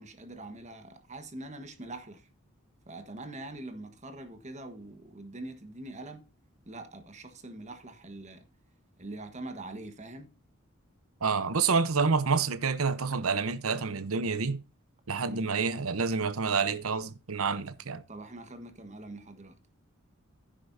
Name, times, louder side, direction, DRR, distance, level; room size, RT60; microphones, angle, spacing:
voice 1, 0.0-2.2 2.9-6.2 6.7-8.4 9.0-10.3 15.2-15.5 18.1-19.6, right 2 dB, 35° right, 1.4 m, -43 dB
voice 2, 11.2-14.6 15.1-18.0, right 5 dB, 85° right, 0.9 m, -28 dB
10.5 x 9.9 x 2.7 m
head